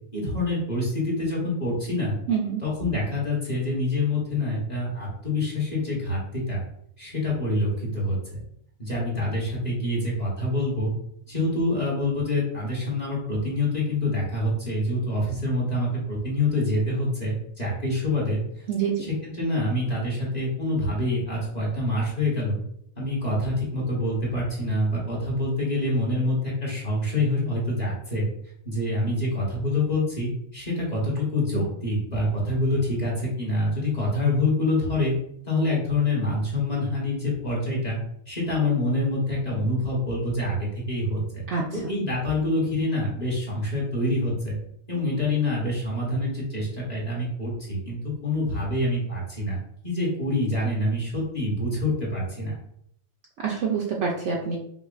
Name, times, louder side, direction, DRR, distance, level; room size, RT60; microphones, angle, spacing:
voice 1, 0.1-2.2 2.6-6.6 7.0-8.4 8.8-10.9 11.3-18.6 19.4-22.6 23.0-28.3 28.6-35.1 35.5-38.0 38.3-41.4 41.7-44.6 44.9-49.6 49.8-52.6, left 1 dB, 30° left, -5 dB, 1.2 m, -26 dB
voice 2, 2.3-2.6 18.7-19.0 41.5-42.0 53.4-54.6, right 6 dB, 65° right, -1 dB, 0.8 m, -26 dB
5.4 x 2.2 x 2.4 m, 0.71 s
omnidirectional pair, 1.5 m